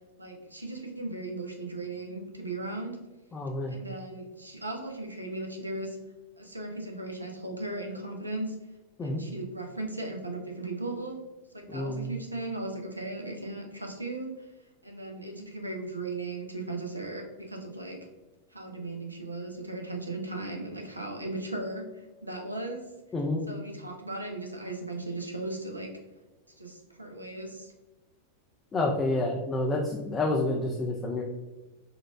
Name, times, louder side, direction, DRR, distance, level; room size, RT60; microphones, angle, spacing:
voice 1, 0.2-3.0 3.7-6.0 6.4-8.6 9.0-11.2 11.5-14.5 14.8-18.0 18.5-22.8 23.5-25.9 26.6-27.7, right 2 dB, 85° right, 1 dB, 0.5 m, -37 dB
voice 2, 3.3-3.7 9.0-9.2 11.7-12.1 23.1-23.4 28.7-31.2, left 2 dB, 20° left, 0 dB, 0.3 m, -29 dB
3.9 x 2.3 x 2.2 m, 1.1 s
figure-of-eight pair, 90°, 0 cm